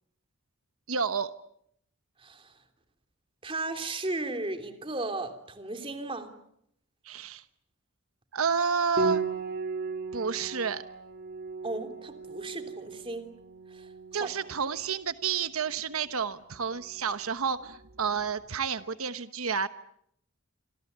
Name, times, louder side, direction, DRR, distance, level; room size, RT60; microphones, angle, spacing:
voice 1, 0.9-1.3 7.0-7.4 8.3-9.2 10.1-10.8 14.1-19.7, right 6 dB, 90° right, 11 dB, 1.1 m, -30 dB
voice 2, 2.2-2.5 3.4-6.3 11.6-13.3 13.7-13.9 14.2-14.3, right 2 dB, 25° right, 7 dB, 3.2 m, -35 dB
Piano, 9.0-18.3, right 3 dB, 50° right, 3.3 m, -37 dB
27.5 x 26.5 x 8.1 m, 0.73 s
head